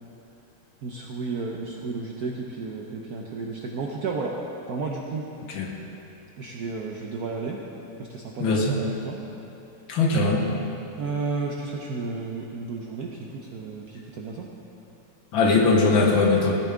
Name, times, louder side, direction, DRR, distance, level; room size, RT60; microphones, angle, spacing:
voice 1, 0.8-4.4 4.7-5.3 6.4-7.6 8.0-9.2 11.0-14.5, right 4 dB, 65° right, -1 dB, 0.9 m, -32 dB
voice 2, 8.4-8.8 9.9-10.5 15.3-16.6, left 3 dB, 65° left, 0 dB, 1.9 m, -20 dB
16.0 x 10.0 x 3.6 m, 2.9 s
omnidirectional pair, 2.4 m